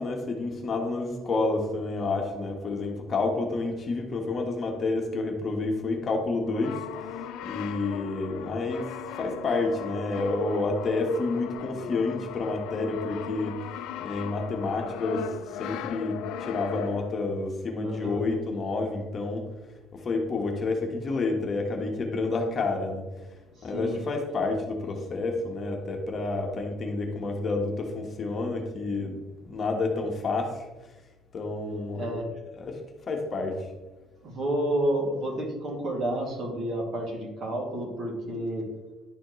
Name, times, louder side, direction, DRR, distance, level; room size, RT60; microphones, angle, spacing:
voice 1, 0.0-13.6 14.0-19.5 19.9-23.1 23.6-30.7 31.3-32.0 32.6-32.8 33.1-33.7, left 3 dB, 40° left, 2 dB, 1.3 m, -29 dB
Brass instrument, 6.4-17.3, left 9 dB, 80° left, 0.5 m, -38 dB
voice 2, 17.8-18.2 23.6-24.0 32.0-32.3 34.2-38.6, right 1 dB, 45° right, -1 dB, 2.3 m, -30 dB
11.0 x 4.2 x 3.1 m, 1.1 s
cardioid pair, 100°, 0 cm